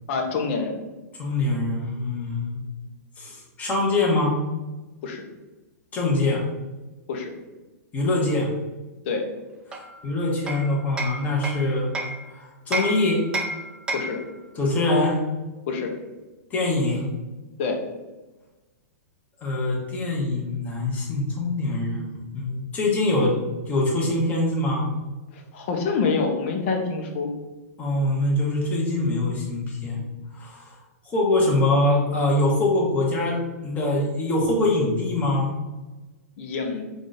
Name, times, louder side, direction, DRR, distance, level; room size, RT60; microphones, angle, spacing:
voice 1, 0.1-0.8 5.0-5.2 7.1-7.3 9.0-9.2 13.9-14.2 15.7-15.9 17.6-17.8 25.3-27.3 36.4-36.8, left 4 dB, 45° left, 2 dB, 0.9 m, -26 dB
voice 2, 1.2-2.6 3.2-4.4 5.9-6.4 7.9-8.5 10.0-11.9 12.3-13.2 14.6-15.2 16.5-17.1 19.4-22.1 22.3-23.3 23.7-24.9 27.8-30.0 30.3-30.7 31.0-33.4 33.6-35.5, left 2 dB, 15° left, -3 dB, 1.2 m, -23 dB
Hammer, 9.7-12.2 12.7-14.3, right 2 dB, 10° right, 0.5 m, -31 dB
5.0 x 2.6 x 4.0 m, 1.1 s
hypercardioid pair, 145°, 9 cm